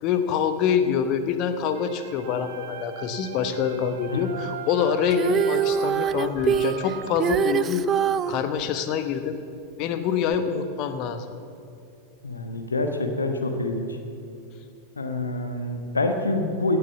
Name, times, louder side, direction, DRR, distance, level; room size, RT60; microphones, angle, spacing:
voice 1, 0.0-7.8 8.3-9.4 9.8-11.3, left 7 dB, 40° left, 9 dB, 0.9 m, -25 dB
sound 1, 1.7-7.4, right 8 dB, 55° right, 1.0 m, -39 dB
Female singing, 5.1-8.4 10.3-10.4, right 8 dB, 25° right, 0.4 m, -24 dB
voice 2, 12.2-14.0 15.0-16.8, left 2 dB, 75° left, 6 dB, 1.2 m, -26 dB
16.5 x 6.9 x 7.1 m, 2.6 s
figure-of-eight pair, 90°, 0 cm